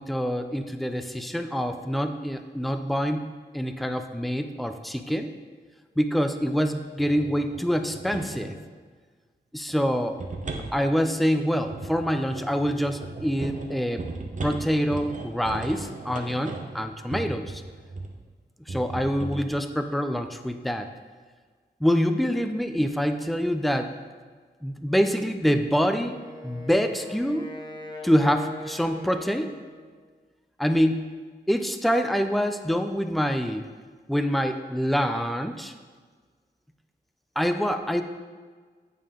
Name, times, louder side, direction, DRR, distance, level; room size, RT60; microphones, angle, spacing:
voice 1, 0.0-3.2 3.5-5.3 6.0-8.5 9.5-10.2 10.7-14.0 14.4-17.6 18.7-20.9 21.8-23.9 24.6-26.2 26.4-27.5 28.0-29.5 30.6-31.0 31.5-33.6 34.1-35.7 37.4-38.0, equal, ahead, 7 dB, 0.4 m, -25 dB
sound 1, 7.0-8.6 9.7-18.2 18.7-19.5, right 3 dB, 45° right, 0.7 m, -37 dB
Wind instrument woodwind instrument, 25.8-30.0, left 2 dB, 25° left, 0.8 m, -41 dB
8.7 x 5.4 x 3.7 m, 1.5 s
wide cardioid pair, 125°, 18 cm